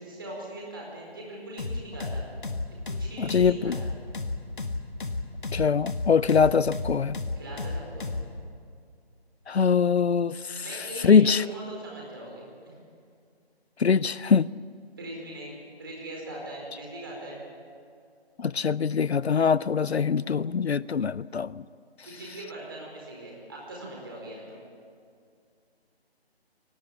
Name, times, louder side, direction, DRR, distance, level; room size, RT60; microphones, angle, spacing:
voice 1, 0.0-2.2 3.0-3.9 7.4-8.1 10.6-12.8 15.0-17.4 22.0-24.6, right 1 dB, 20° right, -2 dB, 4.7 m, -40 dB
sound 1, 1.6-8.3, left 3 dB, 50° left, 1.8 m, -32 dB
voice 2, 3.2-3.8 5.5-7.2 9.5-11.4 13.8-14.5 18.4-21.6, left 6 dB, 80° left, 20 dB, 0.6 m, -23 dB
23.5 x 19.0 x 8.5 m, 2.3 s
figure-of-eight pair, 175°, 32 cm